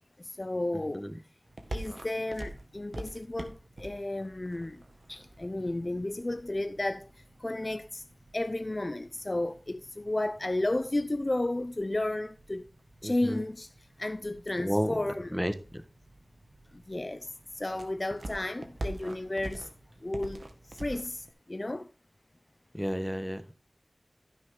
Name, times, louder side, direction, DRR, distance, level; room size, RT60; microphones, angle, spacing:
voice 1, 0.2-1.1 1.7-4.8 5.1-7.1 7.4-8.0 8.3-12.7 13.0-13.7 14.0-15.4 16.7-19.7 20.0-21.9, left 1 dB, 40° left, 0.5 m, -33 dB
sound 1, 1.4-21.3, right 1 dB, 75° right, 1.9 m, -46 dB
voice 2, 13.0-13.4 14.6-14.9 15.3-15.5 22.7-23.5, equal, ahead, 1.5 m, -31 dB
15.0 x 6.5 x 3.8 m
wide cardioid pair, 50°, 0 cm